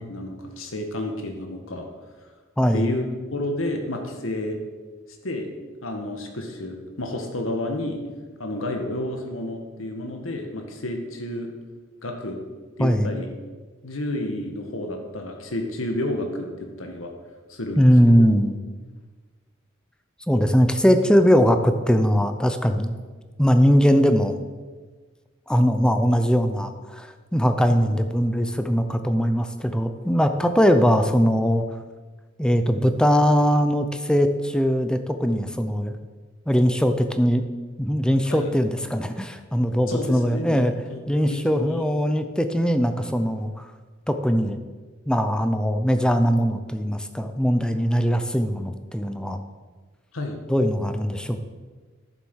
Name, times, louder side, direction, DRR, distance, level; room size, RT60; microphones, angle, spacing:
voice 1, 0.1-1.9 2.7-3.0 3.3-4.6 5.2-5.5 5.8-8.0 8.4-11.5 12.0-12.4 12.8-13.3 13.8-17.1 17.5-18.2 38.3-38.5 39.9-40.6 40.9-41.0 41.3-41.9 50.1-50.4, left 1 dB, 90° left, 4 dB, 1.7 m, -30 dB
voice 2, 17.8-18.6 20.3-22.9 23.4-24.3 25.5-31.6 32.4-35.9 36.5-37.5 37.8-40.7 41.1-43.7 44.1-44.6 45.1-49.4 50.5-51.4, equal, 5° left, 8 dB, 0.6 m, -20 dB
11.0 x 7.3 x 6.4 m, 1.4 s
head